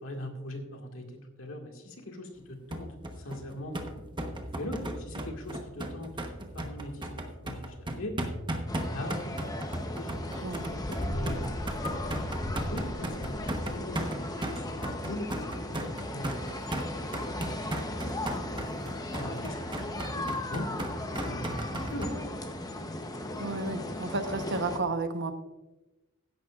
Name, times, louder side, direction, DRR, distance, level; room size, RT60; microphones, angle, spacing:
voice 1, 0.0-3.8 4.6-6.1 6.5-8.2 8.8-9.5 9.9-11.7 12.6-14.7 15.1-15.3 15.7-16.5 16.9-17.1 17.4-18.2 19.2-19.7 20.1-20.7 21.2-22.4, left 1 dB, 65° left, 3 dB, 2.0 m, -41 dB
sound 1, 2.7-22.1, right 1 dB, 20° right, 1.0 m, -36 dB
sound 2, 8.7-24.8, left 1 dB, 20° left, 0.8 m, -36 dB
voice 2, 23.4-25.3, right 3 dB, 60° right, 8 dB, 1.0 m, -32 dB
15.5 x 10.5 x 2.4 m, 1.1 s
head